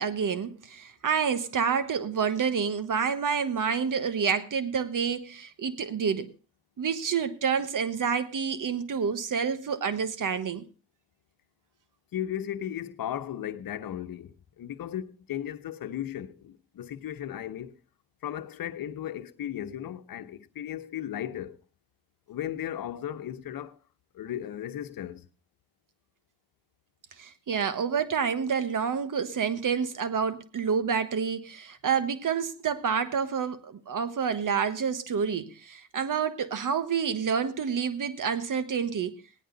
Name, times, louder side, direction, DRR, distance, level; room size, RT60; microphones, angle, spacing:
voice 1, 0.0-6.3 6.8-10.7 27.2-39.2, right 6 dB, 60° right, 1.4 m, -28 dB
voice 2, 12.1-17.8 18.2-21.6 22.3-23.8 24.1-25.3, left 11 dB, 75° left, 1.0 m, -36 dB
16.5 x 10.5 x 3.9 m
supercardioid pair, 55°, 35 cm